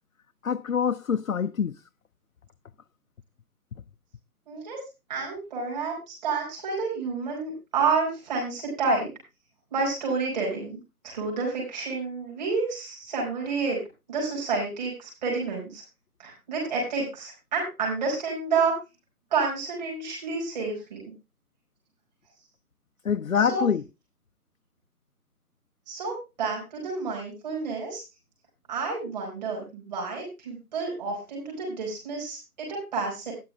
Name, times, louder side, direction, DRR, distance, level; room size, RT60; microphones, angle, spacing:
voice 1, 0.4-1.8 23.0-23.8, left 7 dB, 60° left, 0.6 m, -25 dB
voice 2, 4.5-4.8 5.1-9.1 9.7-10.8 11.0-13.8 14.1-15.8 16.2-18.7 19.3-21.0 23.3-23.7 25.9-28.0 28.7-33.3, right 4 dB, 25° right, 4.4 m, -29 dB
13.0 x 9.8 x 3.1 m
figure-of-eight pair, 155°, 47 cm